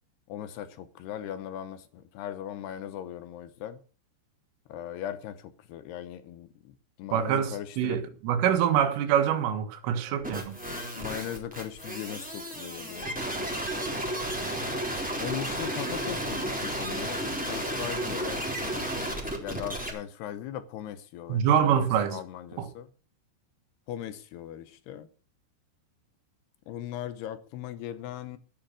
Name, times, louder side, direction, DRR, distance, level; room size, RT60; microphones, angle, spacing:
voice 1, 0.3-3.8 4.7-8.0 10.9-13.1 15.2-18.8 19.4-22.9 23.9-25.1 26.7-28.4, left 11 dB, 75° left, 2.5 m, -39 dB
voice 2, 7.1-10.6 21.3-22.2 22.6-22.7, right 9 dB, 85° right, 4.0 m, -25 dB
sound 1, 10.2-19.9, right 1 dB, ahead, 2.7 m, -33 dB
13.5 x 10.0 x 6.2 m
omnidirectional pair, 5.6 m